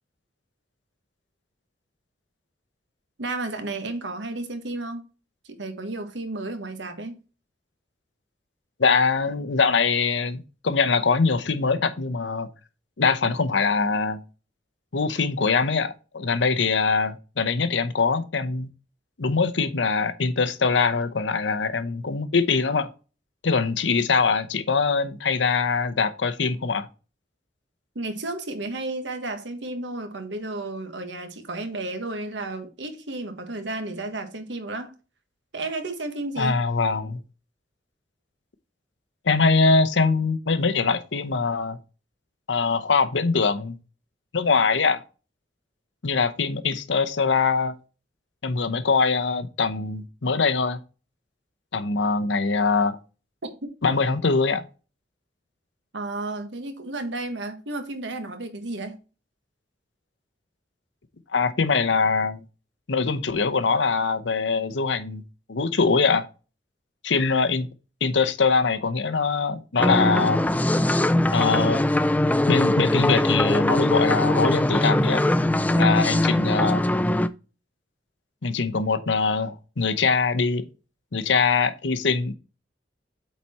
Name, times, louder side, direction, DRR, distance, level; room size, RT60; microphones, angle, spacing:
voice 1, 3.2-5.0 5.4-7.2 27.9-34.9 35.5-36.6 53.6-53.7 55.9-59.0 75.6-76.1, right 2 dB, 85° right, 1.4 m, -32 dB
voice 2, 8.8-12.5 13.0-14.2 14.9-18.7 19.2-22.9 23.4-26.9 36.4-37.2 39.3-41.8 42.5-43.7 44.3-45.0 46.0-47.8 48.4-50.8 51.7-53.0 53.8-54.6 61.3-62.4 62.9-65.2 65.5-66.3 67.0-67.7 68.0-70.5 71.3-71.8 72.5-75.2 75.8-76.8 78.4-80.7 81.1-82.4, left 4 dB, 90° left, 0.8 m, -23 dB
sound 1, 69.8-77.3, left 1 dB, 10° left, 0.3 m, -21 dB
8.1 x 4.3 x 4.3 m
head